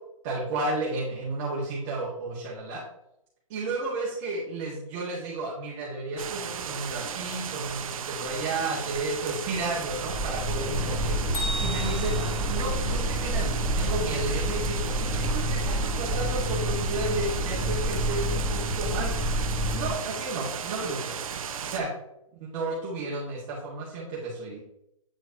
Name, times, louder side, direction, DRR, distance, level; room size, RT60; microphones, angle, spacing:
voice 1, 0.2-2.8 3.5-12.2 12.5-19.2 19.7-21.2 21.6-21.9 22.3-24.6, right 2 dB, 35° right, -6 dB, 1.6 m, -32 dB
sound 1, 6.2-21.8, right 7 dB, 80° right, 0.8 m, -35 dB
sound 2, 9.8-19.9, equal, 5° left, 2.6 m, -29 dB
Bell, 11.3-13.4, left 1 dB, 85° left, 2.2 m, -36 dB
8.9 x 4.4 x 2.8 m, 0.83 s
hypercardioid pair, 155°, 17 cm